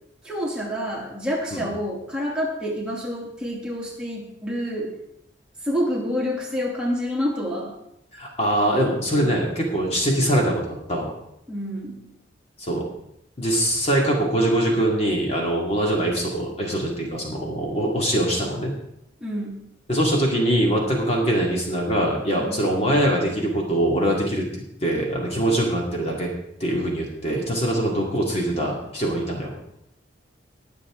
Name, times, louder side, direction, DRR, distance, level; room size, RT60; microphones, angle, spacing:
voice 1, 0.2-4.9 5.6-7.7 9.1-9.3 11.5-12.0 19.2-19.6 22.4-22.6, equal, 5° right, -4 dB, 2.6 m, -28 dB
voice 2, 8.1-10.6 10.9-11.1 12.6-12.8 13.4-18.7 19.9-26.3 26.6-29.5, right 1 dB, 35° left, -1 dB, 2.2 m, -23 dB
20.5 x 7.0 x 3.7 m, 0.79 s
head